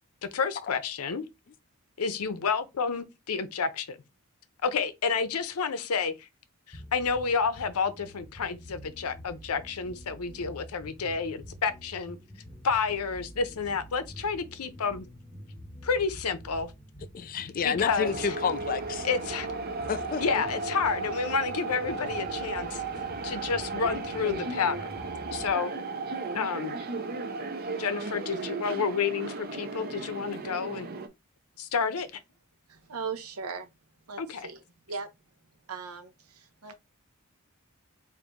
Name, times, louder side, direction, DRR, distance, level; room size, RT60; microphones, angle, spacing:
voice 1, 0.3-1.3 2.0-4.0 4.6-6.3 6.7-12.2 12.6-15.1 15.8-16.7 17.6-18.4 19.0-19.5 20.2-22.8 23.2-24.8 25.3-25.7 26.3-26.8 27.8-30.9 31.6-32.1 34.2-34.5, left 5 dB, 85° left, 0.6 m, -30 dB
sound 1, 6.7-25.5, equal, 10° left, 0.8 m, -47 dB
voice 2, 17.1-19.1 19.9-20.2, left 6 dB, 40° left, 0.4 m, -29 dB
sound 2, 18.0-31.1, right 3 dB, 45° right, 0.5 m, -35 dB
voice 3, 32.7-33.7 34.1-34.6 34.9-35.1 35.7-36.7, right 5 dB, 80° right, 0.7 m, -38 dB
3.9 x 2.6 x 3.6 m
head